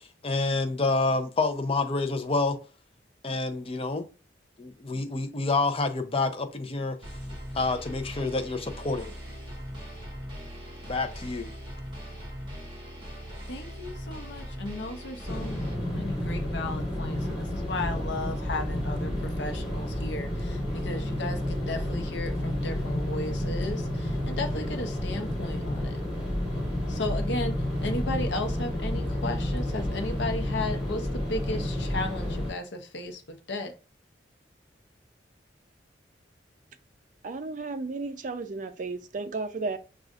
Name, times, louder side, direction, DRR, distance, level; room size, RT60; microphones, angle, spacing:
voice 1, 0.2-2.6 3.2-4.1 4.6-7.0 7.5-9.1 10.9-11.5, left 3 dB, 30° left, 0.6 m, -28 dB
Short metal loop, 7.0-15.7, equal, 25° right, 1.5 m, -40 dB
voice 2, 13.5-26.0 26.9-33.7, left 2 dB, 75° left, 0.7 m, -35 dB
sound 1, 15.3-32.5, left 1 dB, 5° right, 2.0 m, -30 dB
voice 3, 37.2-39.8, right 3 dB, 45° right, 0.4 m, -33 dB
6.3 x 2.4 x 2.4 m
head